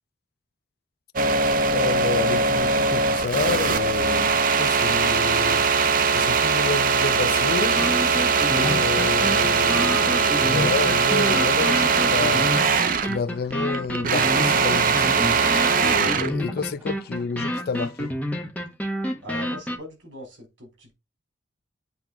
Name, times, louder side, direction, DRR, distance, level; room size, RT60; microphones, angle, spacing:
sound 1, 1.2-13.2 13.5-16.4, right 5 dB, 45° right, 0.7 m, -21 dB
voice 1, 1.7-5.7 6.1-8.2 8.5-12.5 13.0-15.3 15.7-18.1, left 5 dB, 55° left, 0.4 m, -30 dB
sound 2, 6.3-6.4 6.8-6.9 7.3-7.4 7.8-19.8, equal, 10° left, 1.2 m, -29 dB
sound 3, 8.6-10.8 11.8-12.1 12.7-17.8, left 2 dB, 10° right, 2.2 m, -43 dB
voice 2, 19.2-20.9, equal, 75° right, 4.7 m, -40 dB
7.9 x 3.4 x 5.8 m
head